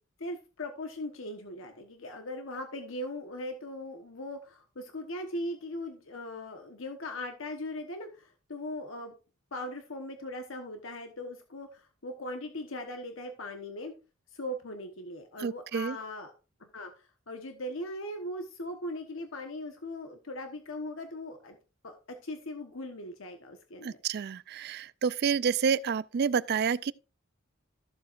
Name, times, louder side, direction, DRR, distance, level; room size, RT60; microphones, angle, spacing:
voice 1, 0.2-9.1 9.5-13.9 14.3-16.3 16.6-21.6 21.8-21.9 22.2-24.0, left 1 dB, 70° left, 1.2 m, -39 dB
voice 2, 15.4-16.0 23.8-26.9, right 6 dB, 50° right, 0.3 m, -29 dB
14.0 x 7.5 x 2.5 m
head